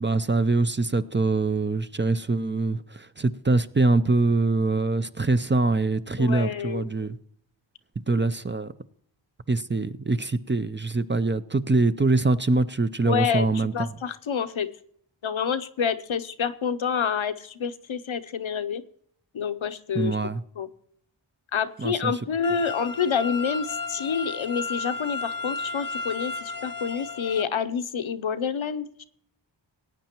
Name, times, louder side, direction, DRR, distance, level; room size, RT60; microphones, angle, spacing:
voice 1, 0.0-7.2 8.1-8.7 9.5-13.7 19.9-20.4 21.8-22.1, right 3 dB, 25° right, 0.4 m, -24 dB
voice 2, 6.2-6.9 13.1-14.7 15.2-18.8 19.3-20.2 20.6-20.7 21.5-29.0, left 7 dB, 80° left, 0.7 m, -28 dB
sound 1, 22.4-27.4, left 4 dB, 45° left, 0.7 m, -33 dB
18.0 x 9.2 x 2.9 m
wide cardioid pair, 65°, 47 cm